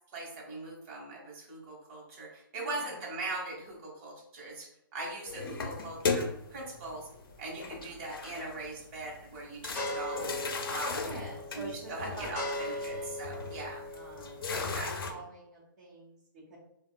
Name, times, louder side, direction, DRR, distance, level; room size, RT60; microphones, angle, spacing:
voice 1, 0.1-7.1 7.4-11.1 11.5-13.9 14.5-15.1, right 2 dB, 35° right, -3 dB, 1.1 m, -41 dB
voice 2, 2.5-2.9 10.9-13.2 13.9-16.6, right 2 dB, 50° right, -5 dB, 0.9 m, -47 dB
sound 1, 5.3-6.7 7.6-8.6 9.0-9.1 9.6-15.1, left 4 dB, 90° left, 0.6 m, -36 dB
sound 2, 5.7-14.9, left 1 dB, 15° left, 0.7 m, -41 dB
3.7 x 2.3 x 2.2 m, 0.79 s
hypercardioid pair, 155°, 12 cm